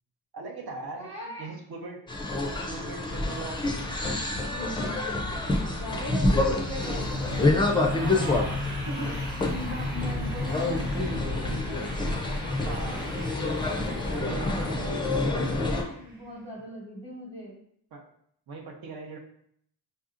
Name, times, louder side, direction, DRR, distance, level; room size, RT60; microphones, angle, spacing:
voice 1, 0.3-1.1 1.4-2.0 2.7-3.9 7.9-8.7 12.6-13.1 14.1-15.2 17.9-18.1 18.5-19.2, right 3 dB, 65° right, 0 dB, 0.7 m, -39 dB
voice 2, 1.0-1.5 4.5-5.2 5.8-8.3 8.9-9.1 9.5-11.8 12.2-12.5 14.0-17.6, equal, 15° right, -4 dB, 1.0 m, -40 dB
sound 1, 2.1-15.8, left 2 dB, 15° left, 0.3 m, -28 dB
sound 2, 4.9-16.2, left 1 dB, 80° right, 1.2 m, -36 dB
5.4 x 2.7 x 2.4 m, 0.69 s
wide cardioid pair, 160°, 40 cm